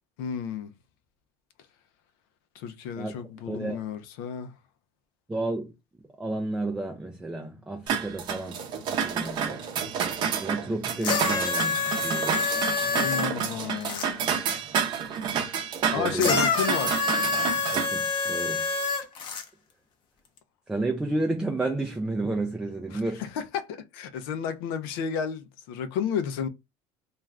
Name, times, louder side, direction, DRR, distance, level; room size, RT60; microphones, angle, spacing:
voice 1, 0.2-0.7 2.5-4.5 12.9-14.3 15.9-17.0 22.9-26.5, left 7 dB, 90° left, 0.5 m, -32 dB
voice 2, 3.5-3.8 5.3-5.7 6.2-8.6 9.0-9.6 10.4-12.4 16.0-16.4 17.7-18.7 20.7-23.2, right 2 dB, 5° right, 0.3 m, -31 dB
sound 1, 7.9-17.9, right 7 dB, 45° right, 0.6 m, -29 dB
sound 2, 11.0-14.1 16.2-19.4 20.4-20.5, left 4 dB, 45° left, 0.6 m, -27 dB
2.4 x 2.3 x 3.2 m
cardioid pair, 145°, 11 cm